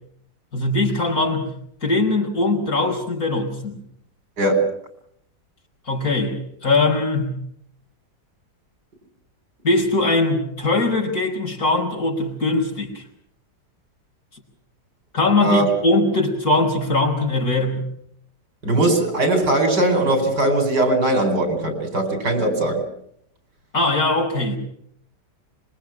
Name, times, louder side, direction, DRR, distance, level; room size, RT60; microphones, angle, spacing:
voice 1, 0.5-1.5 1.8-3.8 5.9-7.4 9.6-13.0 15.1-17.9 23.7-24.6, left 2 dB, 60° left, 0 dB, 5.3 m, -21 dB
voice 2, 4.4-4.7 15.4-15.7 18.6-22.8, right 2 dB, 85° right, 6 dB, 5.5 m, -20 dB
25.5 x 23.0 x 6.0 m, 0.69 s
omnidirectional pair, 1.8 m